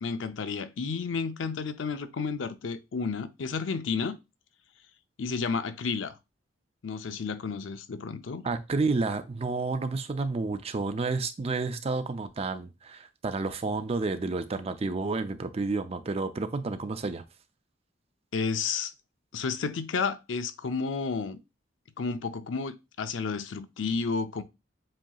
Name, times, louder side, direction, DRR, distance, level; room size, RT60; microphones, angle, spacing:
voice 1, 0.0-4.2 5.2-6.2 6.8-8.4 18.3-18.9 19.3-21.4 22.0-24.4, left 5 dB, 80° left, 0.5 m, -31 dB
voice 2, 8.4-17.2, right 3 dB, 35° right, 0.4 m, -30 dB
7.5 x 2.8 x 2.3 m
head